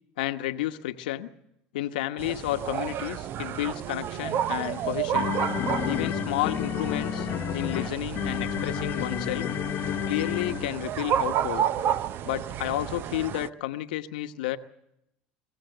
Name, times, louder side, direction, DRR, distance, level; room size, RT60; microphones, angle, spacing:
voice 1, 0.2-1.3 1.7-5.4 5.9-7.3 7.5-9.5 10.0-11.7 12.2-14.6, left 14 dB, 85° left, 8 dB, 1.0 m, -31 dB
sound 1, 2.2-13.5, right 10 dB, 50° right, 0.7 m, -31 dB
sound 2, 4.6-11.0, left 12 dB, 50° left, 0.7 m, -31 dB
24.0 x 16.5 x 8.0 m, 0.80 s
hypercardioid pair, 85°, 5 cm